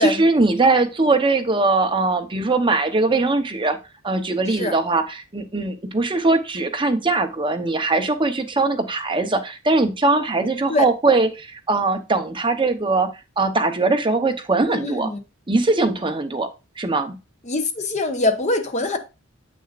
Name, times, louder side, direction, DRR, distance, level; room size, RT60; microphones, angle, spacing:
voice 1, 0.0-3.8 4.0-13.1 13.4-15.1 15.5-17.2, right 3 dB, 25° right, 0.9 m, -21 dB
voice 2, 14.7-15.2 17.5-19.0, left 2 dB, 35° left, 1.0 m, -23 dB
7.8 x 6.3 x 2.5 m
head